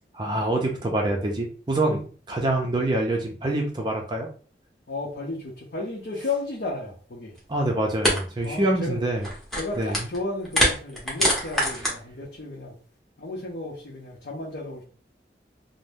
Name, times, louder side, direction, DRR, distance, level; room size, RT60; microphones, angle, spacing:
voice 1, 0.1-2.0 2.3-4.3 7.5-9.3 9.8-10.1, right 1 dB, 25° right, 0.5 m, -25 dB
voice 2, 4.9-7.3 8.4-9.0 9.6-12.7 13.2-14.8, left 2 dB, 60° left, 0.7 m, -33 dB
sound 1, 7.4-7.5 8.0-8.2 8.4-8.7 9.1-10.2 10.4-11.9, equal, ahead, 0.8 m, -24 dB
2.6 x 2.0 x 3.4 m
head